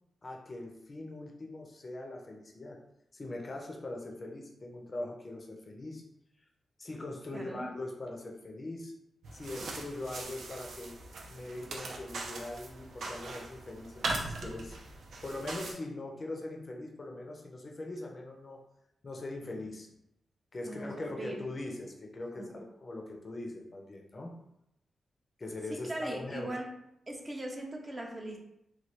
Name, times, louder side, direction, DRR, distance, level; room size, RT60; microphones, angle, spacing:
voice 1, 0.2-2.8 3.1-6.0 6.8-8.9 9.3-11.0 11.3-14.8 15.2-18.6 19.0-19.9 20.5-24.3 25.4-26.5, left 2 dB, 35° left, 1 dB, 0.5 m, -41 dB
voice 2, 7.3-7.7 20.7-21.4 22.4-22.5 25.9-26.7 27.1-28.4, right 1 dB, 25° right, 0 dB, 0.5 m, -39 dB
sound 1, 9.2-15.7, right 2 dB, 75° right, 0.5 m, -40 dB
3.1 x 2.2 x 2.9 m, 0.81 s
wide cardioid pair, 110°, 0 cm